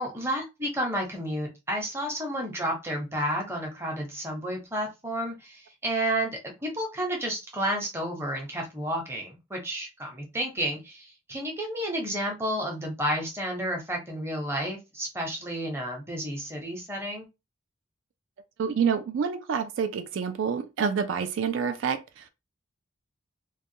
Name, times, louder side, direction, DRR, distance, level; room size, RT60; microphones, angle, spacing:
voice 1, 0.0-17.3, right 1 dB, 15° right, 0.7 m, -31 dB
voice 2, 18.6-22.3, right 6 dB, 75° right, 0.3 m, -28 dB
2.3 x 2.2 x 2.7 m
head